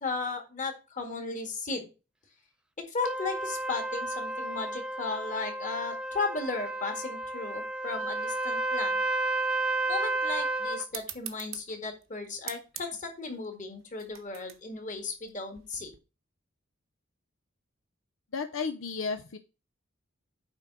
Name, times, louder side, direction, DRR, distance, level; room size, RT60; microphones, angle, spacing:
voice 1, 0.0-1.9 2.9-9.0 9.9-15.9, left 4 dB, 40° left, 4 dB, 1.9 m, -35 dB
Trumpet, 3.0-10.9, right 2 dB, 5° right, 0.5 m, -32 dB
sound 1, 10.9-16.0, right 11 dB, 70° right, 1.0 m, -45 dB
voice 2, 18.3-19.4, left 5 dB, 75° left, 8 dB, 0.6 m, -33 dB
9.0 x 3.7 x 6.0 m, 0.31 s
head